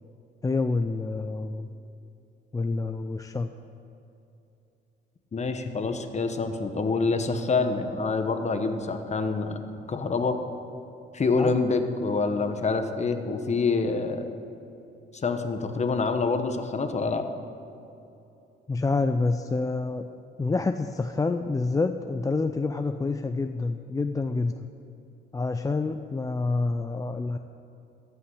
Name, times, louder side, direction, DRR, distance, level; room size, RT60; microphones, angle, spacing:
voice 1, 0.4-1.7 2.5-3.5 11.4-11.6 18.7-20.1 20.4-24.7 25.3-27.4, left 3 dB, 15° left, 8 dB, 0.4 m, -27 dB
voice 2, 5.3-10.4 11.1-14.3 15.1-17.2, left 4 dB, 35° left, 7 dB, 1.0 m, -26 dB
14.0 x 5.8 x 7.9 m, 2.8 s
cardioid pair, 90°, 20 cm